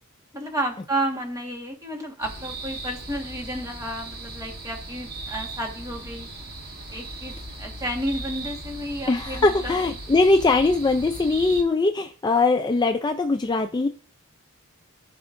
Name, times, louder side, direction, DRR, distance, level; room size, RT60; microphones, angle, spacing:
voice 1, 0.3-6.3 6.9-9.7, right 1 dB, 15° right, 1 dB, 1.5 m, -31 dB
sound 1, 2.2-11.6, right 2 dB, 45° right, 1.3 m, -37 dB
voice 2, 9.1-13.9, left 3 dB, 20° left, 6 dB, 0.3 m, -21 dB
15.0 x 5.2 x 2.6 m, 0.42 s
head